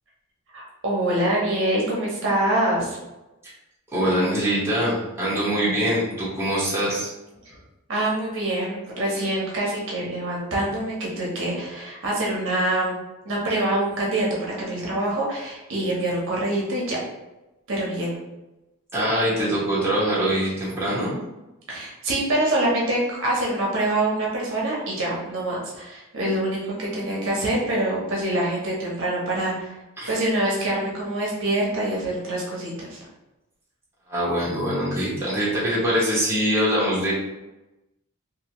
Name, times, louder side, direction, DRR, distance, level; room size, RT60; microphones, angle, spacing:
voice 1, 0.5-3.0 7.9-13.0 13.2-17.0 17.7-18.2 21.7-29.7 30.1-33.0, right 1 dB, 60° right, -4 dB, 0.8 m, -25 dB
voice 2, 3.9-7.1 18.9-21.2 30.0-30.1 34.1-37.1, equal, 10° right, -9 dB, 1.0 m, -23 dB
2.7 x 2.6 x 2.9 m, 0.99 s
head